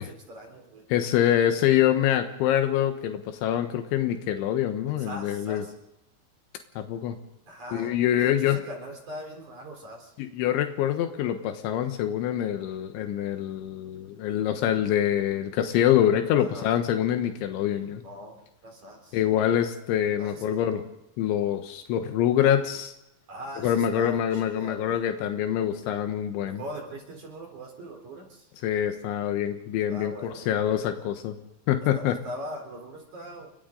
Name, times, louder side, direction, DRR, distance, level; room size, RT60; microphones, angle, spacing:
voice 1, 0.0-0.8 4.9-5.7 7.5-10.1 16.4-16.7 18.0-19.2 20.2-20.8 23.3-25.0 26.4-28.5 29.9-30.4 31.9-33.5, equal, 40° right, 1 dB, 4.9 m, -41 dB
voice 2, 0.9-5.6 6.8-7.2 7.7-8.6 10.2-18.0 19.1-20.8 21.2-22.9 23.6-26.6 28.6-31.4 31.7-32.2, left 10 dB, 85° left, 6 dB, 3.6 m, -25 dB
29.5 x 24.0 x 3.9 m, 0.88 s
omnidirectional pair, 5.2 m